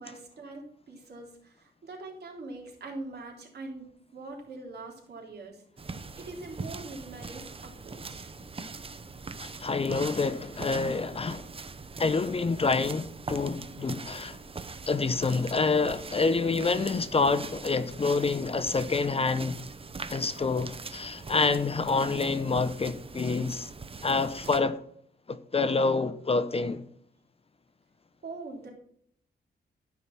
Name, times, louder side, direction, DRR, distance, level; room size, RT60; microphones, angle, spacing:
voice 1, 0.0-3.9 4.1-5.6 6.2-8.3 28.2-28.7, right 2 dB, 60° right, 3.6 m, -43 dB
sound 1, 5.8-24.6, right 4 dB, 30° right, 0.9 m, -42 dB
voice 2, 9.4-11.5 12.0-14.4 14.9-19.6 20.1-23.7 24.0-24.8 25.3-26.8, left 4 dB, 30° left, 0.7 m, -27 dB
13.0 x 5.7 x 6.1 m
cardioid pair, 110°, 19 cm